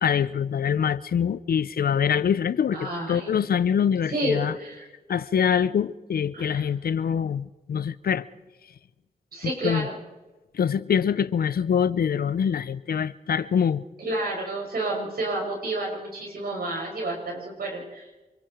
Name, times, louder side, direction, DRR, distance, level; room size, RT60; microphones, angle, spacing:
voice 1, 0.0-4.6 5.1-8.2 9.6-9.9 10.5-13.8, left 7 dB, 75° left, 17 dB, 0.7 m, -24 dB
voice 2, 2.7-3.3 4.1-4.8 6.3-6.7 9.3-10.0 14.0-18.2, right 2 dB, 80° right, -1 dB, 7.2 m, -30 dB
28.5 x 22.5 x 4.6 m, 1.1 s
cardioid pair, 45°, 16 cm